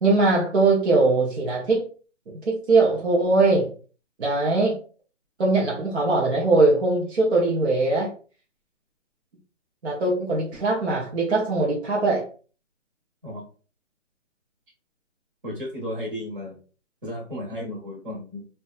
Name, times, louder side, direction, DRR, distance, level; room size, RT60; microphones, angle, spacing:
voice 1, 0.0-1.9 2.3-3.7 4.2-4.8 5.4-8.1 9.8-12.3, right 3 dB, 60° right, -3 dB, 0.7 m, -21 dB
voice 2, 15.4-16.6 17.0-18.5, left 1 dB, 45° right, -2 dB, 1.1 m, -34 dB
2.6 x 2.2 x 2.4 m, 0.38 s
hypercardioid pair, 175°, 37 cm